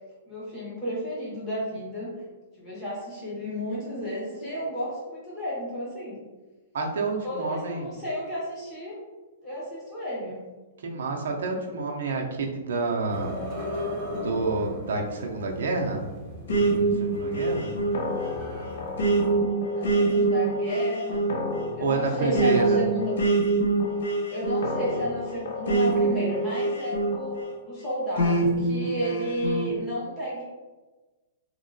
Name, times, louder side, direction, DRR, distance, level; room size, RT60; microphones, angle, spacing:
voice 1, 0.3-2.1 2.6-6.2 7.2-8.9 9.4-10.4 19.7-21.3 21.7-23.1 24.3-27.4 27.6-30.5, equal, 15° left, -9 dB, 1.1 m, -32 dB
voice 2, 6.7-7.9 10.8-13.4 14.1-16.0 16.5-17.7 21.8-22.8, right 3 dB, 70° right, 0 dB, 0.5 m, -29 dB
sound 1, 13.1-19.4, left 1 dB, 20° right, 0.6 m, -37 dB
sound 2, 16.5-27.5 28.2-29.7, right 2 dB, 70° left, 0.6 m, -25 dB
2.9 x 2.8 x 2.6 m, 1.2 s
hypercardioid pair, 175°, 0 cm